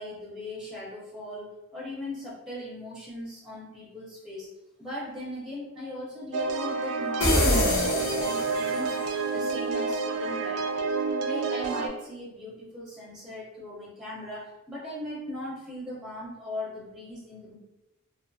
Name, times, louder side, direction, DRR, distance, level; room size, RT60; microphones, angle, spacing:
voice 1, 0.0-4.5 4.8-10.9 11.2-17.6, left 1 dB, ahead, -5 dB, 0.5 m, -39 dB
sound 1, 6.3-11.9, right 4 dB, 80° right, 0.3 m, -29 dB
sound 2, 7.2-9.0, left 1 dB, 65° left, 0.9 m, -25 dB
2.6 x 2.4 x 2.3 m, 0.97 s
head